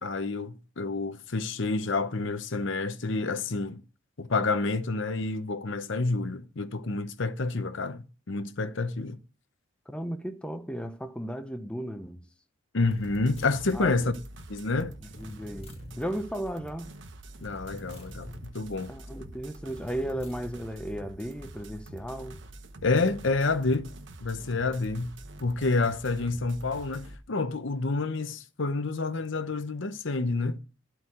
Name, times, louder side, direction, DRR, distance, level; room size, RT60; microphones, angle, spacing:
voice 1, 0.0-3.8 4.2-9.2 12.7-14.1 14.5-14.9 17.4-18.9 22.8-23.9 24.2-25.1 25.4-30.6, left 3 dB, 60° left, 0.8 m, -29 dB
voice 2, 9.9-12.3 13.7-14.1 15.2-16.9 18.9-22.4, equal, 5° left, 0.7 m, -35 dB
sound 1, 12.8-14.0 15.1-16.0 17.3-18.5 19.7-20.6, left 1 dB, 25° left, 2.3 m, -46 dB
sound 2, 13.0-27.2, right 1 dB, 60° right, 1.2 m, -46 dB
12.0 x 4.7 x 7.8 m
head